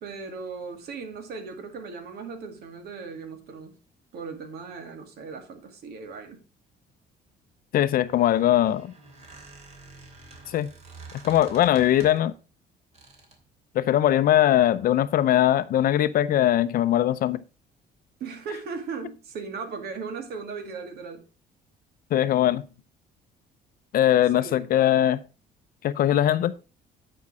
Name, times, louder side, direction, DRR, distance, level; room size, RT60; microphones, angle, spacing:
voice 1, 0.0-3.8 4.1-6.4 18.2-21.3 24.3-24.7, right 5 dB, 70° right, 2.2 m, -37 dB
voice 2, 7.7-8.9 10.5-10.7 11.2-12.3 13.7-17.4 22.1-22.6 23.9-25.2 25.8-26.5, left 12 dB, 60° left, 0.6 m, -21 dB
Squeak, 8.1-12.3 12.9-13.5, right 3 dB, 40° right, 2.8 m, -48 dB
9.7 x 5.3 x 4.7 m
cardioid pair, 110°, 17 cm